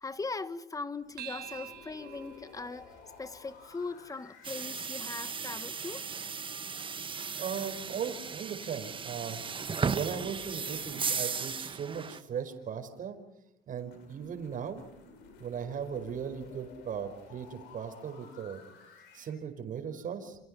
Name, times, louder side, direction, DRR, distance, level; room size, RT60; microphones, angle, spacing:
voice 1, 0.0-2.9 3.2-6.1, left 3 dB, 20° left, 1.6 m, -40 dB
sound 1, 1.0-6.1 9.2-13.0 13.7-19.4, left 4 dB, 90° left, 6.4 m, -54 dB
sound 2, 1.2-5.9, right 11 dB, 75° right, 3.5 m, -50 dB
sound 3, 4.4-12.2, right 6 dB, 30° right, 1.5 m, -36 dB
voice 2, 7.1-9.4 9.9-13.2 13.7-14.8 15.4-18.6 19.1-20.4, right 7 dB, 50° right, 5.0 m, -38 dB
29.5 x 28.0 x 5.5 m
cardioid pair, 110°, 17 cm